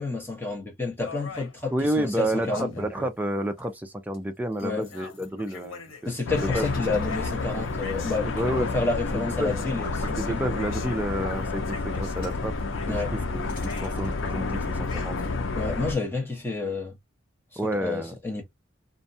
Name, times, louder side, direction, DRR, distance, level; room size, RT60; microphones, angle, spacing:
voice 1, 0.0-3.1 4.6-4.9 6.1-10.6 12.9-13.1 15.6-17.0 17.8-18.4, left 3 dB, 10° left, 0.9 m, -30 dB
sound 1, 1.0-2.9 3.6-3.7 4.1-4.3 4.6-8.2 9.3-11.0 11.4-12.3 12.7-14.2 14.5-15.4, left 4 dB, 85° left, 0.9 m, -43 dB
voice 2, 1.7-6.1 6.4-6.7 8.3-8.7 9.1-9.6 10.0-12.5 12.9-15.4 17.6-18.1, right 1 dB, 10° right, 0.4 m, -30 dB
sound 2, 6.3-15.9, left 3 dB, 70° left, 0.6 m, -30 dB
sound 3, 6.6-7.8 9.8-10.2 11.2-11.5 12.2-12.4 13.5-14.3, left 4 dB, 50° left, 1.3 m, -43 dB
2.6 x 2.2 x 2.6 m
head